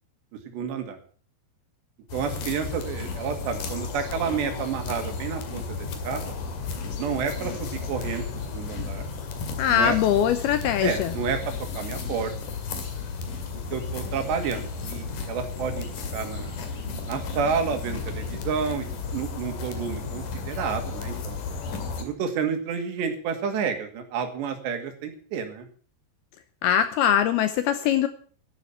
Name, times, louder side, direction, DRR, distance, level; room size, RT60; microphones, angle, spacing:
voice 1, 0.5-1.0 2.1-6.2 7.0-9.1 9.7-10.0 10.8-11.4 11.7-12.5 13.5-16.6 17.1-18.9 19.1-21.4 22.0-25.7, right 6 dB, 70° right, 6 dB, 4.3 m, -30 dB
sound 1, 2.1-22.0, left 4 dB, 55° left, 3.3 m, -33 dB
voice 2, 9.6-11.1 26.6-28.1, left 10 dB, 75° left, 11 dB, 2.4 m, -22 dB
12.0 x 11.5 x 8.2 m, 0.43 s
omnidirectional pair, 5.3 m